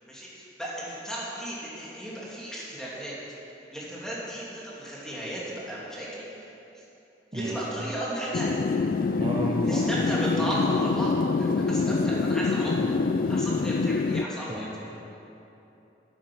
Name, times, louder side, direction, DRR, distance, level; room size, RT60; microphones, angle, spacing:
voice 1, 0.1-3.1 3.7-6.5 6.7-6.8 7.3-8.5 9.6-12.8 13.3-14.9, right 1 dB, 5° left, -7 dB, 2.8 m, -35 dB
sound 1, 8.3-14.3, left 4 dB, 50° left, 0.4 m, -25 dB
voice 2, 9.2-9.9 12.8-13.0 14.5-14.9, right 1 dB, 30° right, -3 dB, 0.9 m, -33 dB
12.0 x 9.7 x 6.2 m, 2.9 s
head